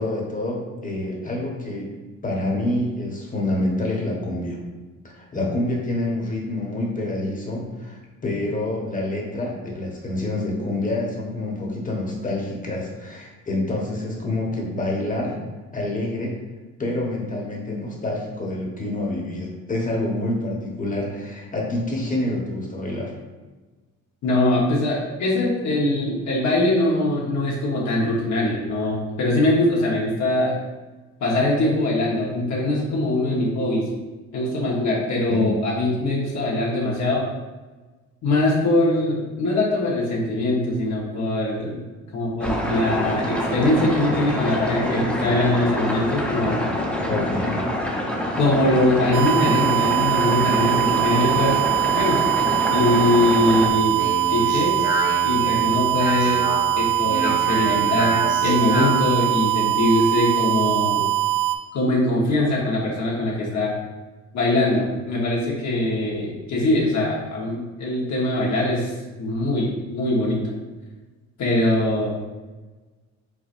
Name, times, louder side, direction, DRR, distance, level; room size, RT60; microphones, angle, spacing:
voice 1, 0.0-1.9 2.2-4.6 5.0-15.4 15.7-16.4 16.8-23.1 35.3-35.5 47.1-47.6, left 1 dB, 25° left, -2 dB, 1.2 m, -27 dB
voice 2, 24.2-30.6 31.2-33.9 34.3-37.3 38.2-41.8 42.1-46.6 48.3-52.2 52.7-54.8 55.2-56.5 56.8-61.1 61.7-63.7 64.3-68.9 69.2-70.5 71.4-72.1, left 1 dB, 65° left, -5 dB, 1.2 m, -22 dB
sound 1, 42.4-53.7, left 1 dB, 5° left, 0.9 m, -26 dB
sound 2, 49.1-61.6, right 14 dB, 75° right, 0.6 m, -22 dB
Speech, 53.7-59.1, equal, 15° right, 1.2 m, -28 dB
4.8 x 3.9 x 2.5 m, 1.2 s
cardioid pair, 90°, 30 cm